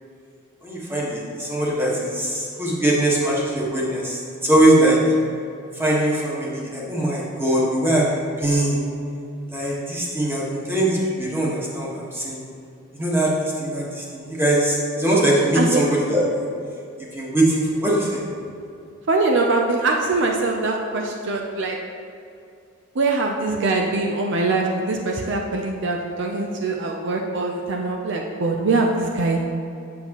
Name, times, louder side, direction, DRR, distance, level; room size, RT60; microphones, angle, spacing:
voice 1, 0.6-5.0 5.7-8.8 9.5-12.4 12.9-16.2 17.0-18.2, right 1 dB, 10° right, -5 dB, 1.4 m, -21 dB
voice 2, 19.1-21.8 22.9-29.5, right 3 dB, 60° right, 1 dB, 0.6 m, -23 dB
8.6 x 7.1 x 3.0 m, 2.5 s
head